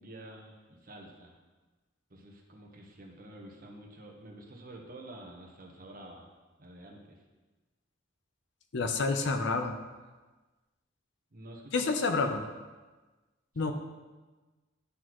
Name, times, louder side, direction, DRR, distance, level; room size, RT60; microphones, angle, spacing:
voice 1, 0.0-1.4 2.1-6.3 6.6-7.2 11.3-12.4 13.6-13.7, right 1 dB, 45° right, 1 dB, 1.1 m, -49 dB
voice 2, 8.7-9.8 11.7-12.4 13.6-13.7, left 3 dB, 65° left, 6 dB, 0.6 m, -28 dB
11.0 x 4.1 x 3.0 m, 1.2 s
head